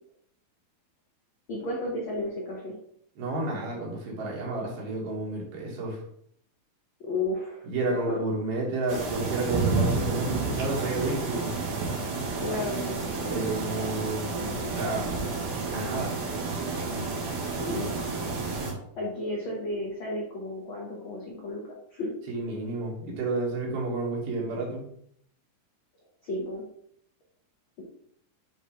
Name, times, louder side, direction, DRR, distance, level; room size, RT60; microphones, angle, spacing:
voice 1, 1.5-2.8 7.0-8.2 12.4-13.4 17.6-18.1 19.0-21.6 21.9-22.1 26.2-26.6 27.8-27.9, left 2 dB, 80° left, -3 dB, 1.1 m, -33 dB
voice 2, 3.2-6.0 7.7-11.5 13.3-15.1 15.7-16.2 16.9-17.0 22.3-24.8, right 2 dB, 85° right, -3 dB, 3.7 m, -31 dB
sound 1, 8.9-18.7, right 3 dB, 65° right, 3.1 m, -30 dB
7.9 x 3.0 x 4.7 m, 0.68 s
omnidirectional pair, 4.2 m